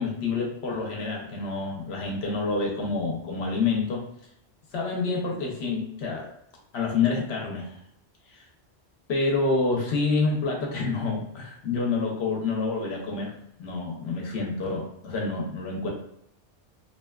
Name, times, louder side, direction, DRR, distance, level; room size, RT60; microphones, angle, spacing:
voice 1, 0.0-4.0 4.7-6.3 6.7-7.8 8.3-8.4 9.1-13.3 13.6-15.9, left 4 dB, 70° left, -1 dB, 0.8 m, -28 dB
2.7 x 2.1 x 2.2 m, 0.74 s
omnidirectional pair, 1.1 m